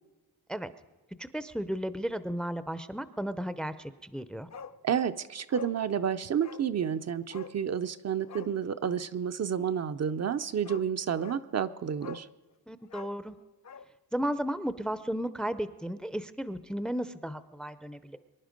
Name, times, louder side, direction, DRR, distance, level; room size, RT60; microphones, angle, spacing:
voice 1, 1.2-4.5 12.7-13.4 14.1-18.2, equal, ahead, 13 dB, 0.5 m, -34 dB
Bark, 4.5-4.8 5.1-5.2 5.5-5.8 6.4-6.7 7.3-7.6 8.2-8.5 10.1-10.2 10.6-10.9 11.2-11.5 12.0-12.3 12.8-13.9 14.2-14.3, left 5 dB, 45° left, 0.7 m, -45 dB
voice 2, 4.8-12.3, right 8 dB, 45° right, 10 dB, 0.5 m, -30 dB
24.0 x 11.0 x 5.2 m, 1.2 s
wide cardioid pair, 125°, 37 cm